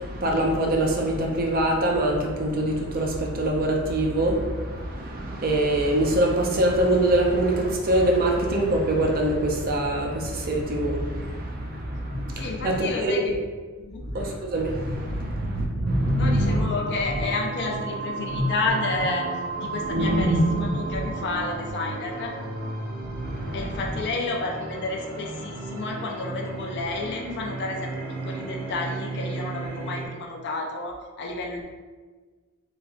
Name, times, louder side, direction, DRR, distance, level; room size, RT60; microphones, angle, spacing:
voice 1, 0.0-13.4 14.0-16.7 18.3-18.4 19.7-21.0 23.0-23.8, right 1 dB, 45° right, 0 dB, 0.5 m, -24 dB
voice 2, 12.3-13.3 13.8-14.0 16.2-19.3 19.6-22.3 23.5-31.6, left 3 dB, 55° left, 1 dB, 0.4 m, -31 dB
sound 1, 15.8-30.1, right 3 dB, 75° right, 0.8 m, -34 dB
3.1 x 2.3 x 2.5 m, 1.4 s
head